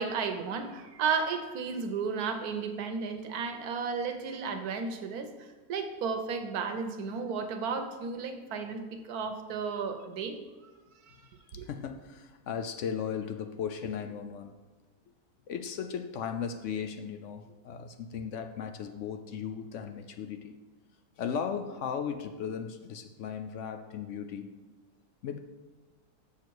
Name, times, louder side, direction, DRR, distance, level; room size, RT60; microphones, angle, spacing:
voice 1, 0.0-10.4 11.0-11.2 11.5-11.7, right 5 dB, 75° right, 7 dB, 1.3 m, -33 dB
voice 2, 11.5-14.6 15.5-20.5 21.2-24.6 25.2-25.4, left 7 dB, 70° left, 7 dB, 0.7 m, -36 dB
7.1 x 6.4 x 4.6 m, 1.2 s
omnidirectional pair, 1.6 m